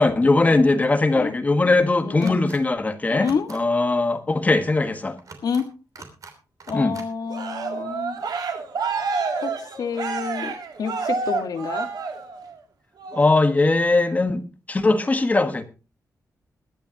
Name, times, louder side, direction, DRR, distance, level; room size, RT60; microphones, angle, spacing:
voice 1, 0.0-5.1 6.7-7.0 13.1-15.6, left 2 dB, 20° left, 7 dB, 1.5 m, -20 dB
voice 2, 2.0-2.4 3.1-3.5 5.4-5.7 6.7-8.2 9.4-9.5 9.8-11.9, left 6 dB, 70° left, 7 dB, 1.8 m, -28 dB
sound 1, 2.2-2.6 3.1-3.6 5.2-5.6 5.9-6.3 6.6-7.1, right 4 dB, 60° right, 3.1 m, -43 dB
Cheering, 7.3-12.5 13.0-13.4, right 4 dB, 85° right, 2.7 m, -28 dB
22.0 x 10.5 x 2.9 m, 0.32 s
wide cardioid pair, 165°, 7 cm